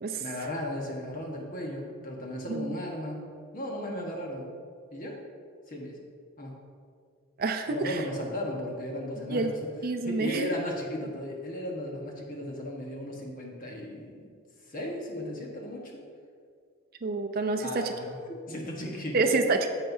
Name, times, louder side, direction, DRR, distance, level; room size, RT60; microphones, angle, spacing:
voice 1, 0.2-3.2 3.5-4.5 4.9-5.2 5.7-6.0 6.4-6.5 7.7-9.7 10.0-14.3 14.6-16.0 17.6-19.4, left 1 dB, 40° left, -1 dB, 1.2 m, -36 dB
voice 2, 7.4-8.0 9.3-9.5 9.8-10.5 17.0-17.9 19.1-19.7, right 3 dB, 45° right, 6 dB, 0.4 m, -27 dB
10.5 x 7.5 x 2.7 m, 2.1 s
head